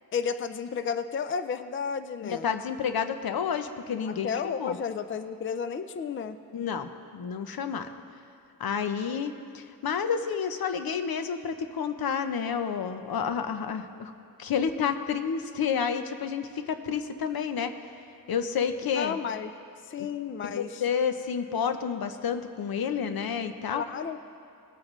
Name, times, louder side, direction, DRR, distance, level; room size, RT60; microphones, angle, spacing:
voice 1, 0.1-2.4 4.1-6.4 18.9-19.5 19.9-20.8 23.7-24.2, left 6 dB, 35° left, 11 dB, 0.4 m, -32 dB
voice 2, 2.2-4.8 6.5-7.9 8.6-14.1 14.4-17.7 18.3-19.2 20.4-23.9, left 7 dB, 80° left, 9 dB, 0.7 m, -30 dB
18.5 x 8.7 x 3.1 m, 2.4 s
wide cardioid pair, 100°, 35 cm